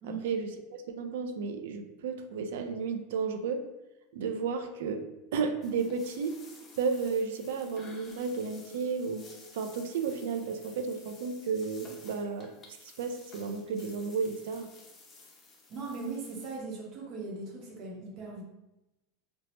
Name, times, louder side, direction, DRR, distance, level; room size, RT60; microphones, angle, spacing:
voice 1, 0.0-3.6 4.1-5.0 5.3-6.4 6.8-12.5 12.8-14.7, right 5 dB, 80° right, 6 dB, 0.3 m, -33 dB
sound 1, 5.6-16.6, left 3 dB, 25° left, 0.6 m, -54 dB
voice 2, 15.7-18.4, right 3 dB, 45° right, -1 dB, 0.7 m, -39 dB
2.9 x 2.0 x 3.0 m, 0.94 s
supercardioid pair, 140°, 0 cm